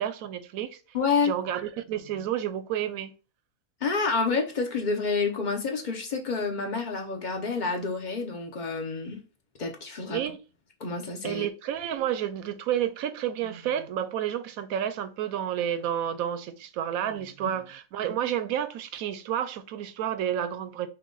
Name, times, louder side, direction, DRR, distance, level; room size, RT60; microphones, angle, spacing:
voice 1, 0.0-0.8 1.2-3.1 10.1-10.4 11.2-20.9, right 10 dB, 75° right, 1.0 m, -30 dB
voice 2, 0.9-1.3 3.8-9.2 9.6-10.2 10.8-11.5, left 4 dB, 35° left, 0.9 m, -28 dB
5.7 x 2.4 x 3.8 m
omnidirectional pair, 1.6 m